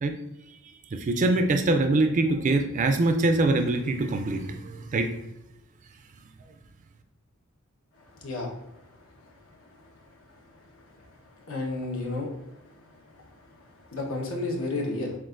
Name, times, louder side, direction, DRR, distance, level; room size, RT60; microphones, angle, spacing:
voice 1, 0.9-5.1, right 2 dB, 35° right, 6 dB, 0.3 m, -24 dB
voice 2, 8.1-8.6 11.0-11.1 11.5-12.3 13.9-15.2, left 2 dB, 70° left, 0 dB, 1.1 m, -31 dB
7.2 x 2.5 x 2.5 m, 0.89 s
head